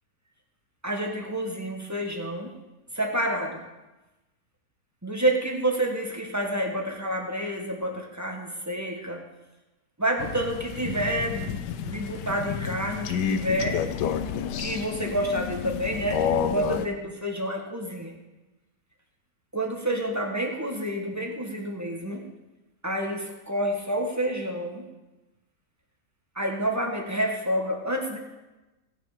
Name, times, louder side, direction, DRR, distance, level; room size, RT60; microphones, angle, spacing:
voice 1, 0.8-2.6 2.9-3.6 5.0-9.3 10.0-13.8 14.6-18.1 19.5-22.2 22.8-24.8 26.3-28.2, right 1 dB, 10° right, 1 dB, 1.3 m, -29 dB
Crow, 10.2-16.9, left 7 dB, 85° left, 1.3 m, -30 dB
18.0 x 6.2 x 5.0 m, 1.1 s
omnidirectional pair, 1.8 m